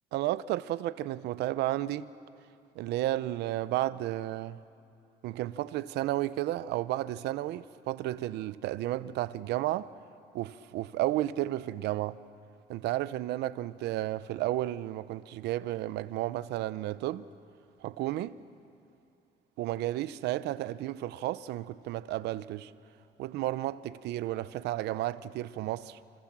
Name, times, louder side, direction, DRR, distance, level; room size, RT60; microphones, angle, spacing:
voice 1, 0.1-2.1 2.8-4.6 5.2-9.9 10.3-12.2 12.7-17.3 17.8-18.4 19.6-22.7 23.2-26.0, right 15 dB, 80° right, 0.8 m, -32 dB
27.5 x 25.5 x 7.6 m
cardioid pair, 110°, 17 cm